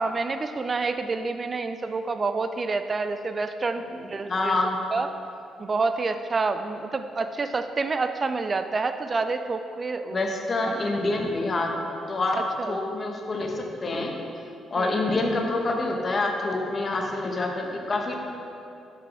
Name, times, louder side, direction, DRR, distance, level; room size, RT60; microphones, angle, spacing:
voice 1, 0.0-4.6 4.9-5.1 5.6-10.3 10.6-10.7 12.4-12.8 14.8-15.0, right 3 dB, 35° right, 9 dB, 0.4 m, -28 dB
voice 2, 4.3-4.8 10.1-11.7 12.1-12.4 12.7-14.1 14.7-18.2, left 2 dB, 35° left, 2 dB, 1.1 m, -26 dB
11.0 x 6.0 x 3.5 m, 2.7 s
cardioid pair, 90°, 0 cm